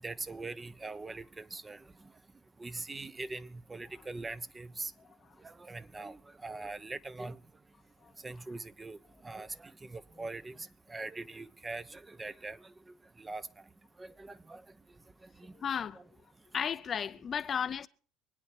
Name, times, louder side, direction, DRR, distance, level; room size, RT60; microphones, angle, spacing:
voice 1, 0.0-1.8 2.6-4.9 5.4-7.4 8.2-9.0 9.2-10.5 10.9-12.6 13.2-13.4 14.0-14.6 15.4-15.5, right 3 dB, 20° right, 0.8 m, -42 dB
voice 2, 15.5-16.0 16.5-17.9, left 7 dB, 40° left, 0.6 m, -34 dB
24.5 x 9.3 x 4.6 m
hypercardioid pair, 80°, 0 cm